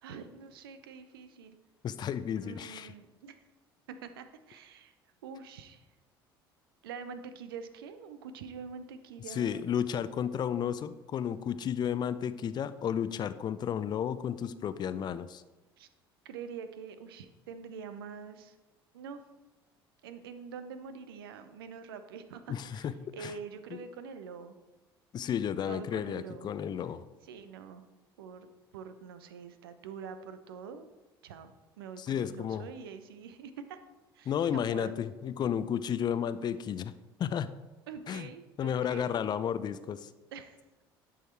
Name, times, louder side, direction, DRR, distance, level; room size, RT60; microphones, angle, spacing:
voice 1, 0.0-1.6 2.4-3.4 3.9-4.9 5.2-5.9 6.8-9.7 15.8-15.9 16.2-18.6 18.9-19.2 20.0-24.5 25.6-26.5 27.2-27.8 28.2-28.5 28.7-30.9 31.2-31.5 31.8-33.8 34.1-35.0 37.9-39.2 40.3-40.8, right 6 dB, 70° right, 10 dB, 0.7 m, -45 dB
voice 2, 1.8-2.9 9.3-15.4 22.5-22.9 23.2-23.3 23.7-23.8 25.1-27.0 32.0-32.7 34.3-36.9 37.2-37.6 38.1-38.3 38.6-40.1, left 8 dB, 35° left, 14 dB, 0.5 m, -32 dB
11.0 x 6.3 x 4.4 m, 1.1 s
figure-of-eight pair, 60°, 13 cm